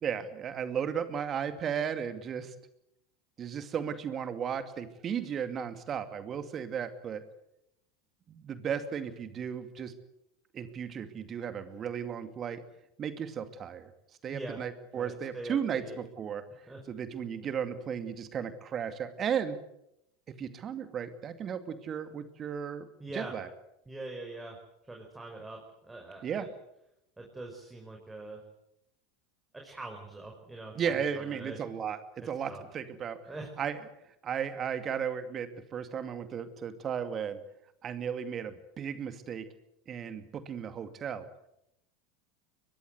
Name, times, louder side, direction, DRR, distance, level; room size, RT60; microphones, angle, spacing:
voice 1, 0.0-2.5 3.4-7.2 8.3-9.9 10.5-12.6 13.0-13.9 14.2-16.4 16.9-19.6 20.3-22.9 23.1-23.5 26.2-26.5 30.7-33.2 33.6-33.8 34.2-37.4 37.8-39.5 39.9-41.3, right 7 dB, 35° right, 10 dB, 2.4 m, -35 dB
voice 2, 14.3-14.6 14.9-15.9 16.7-16.8 23.0-23.3 23.9-24.6 24.8-26.5 27.2-28.4 29.5-31.6 32.2-32.6 33.3-33.5, right 2 dB, 10° right, 1 dB, 5.3 m, -43 dB
22.5 x 22.0 x 8.0 m, 0.80 s
hypercardioid pair, 85°, 0 cm